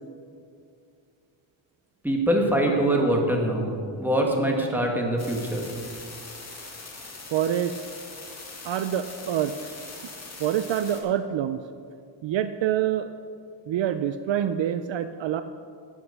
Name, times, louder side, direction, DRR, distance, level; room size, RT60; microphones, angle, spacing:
voice 1, 2.0-5.6, right 1 dB, 5° right, 0 dB, 1.8 m, -24 dB
sound 1, 5.2-11.0, left 3 dB, 30° left, 2.1 m, -42 dB
voice 2, 7.3-7.7 8.6-9.5 10.4-11.6 12.2-13.1 13.7-15.4, right 10 dB, 65° right, 10 dB, 0.6 m, -26 dB
11.0 x 8.3 x 6.6 m, 2.4 s
cardioid pair, 125°, 49 cm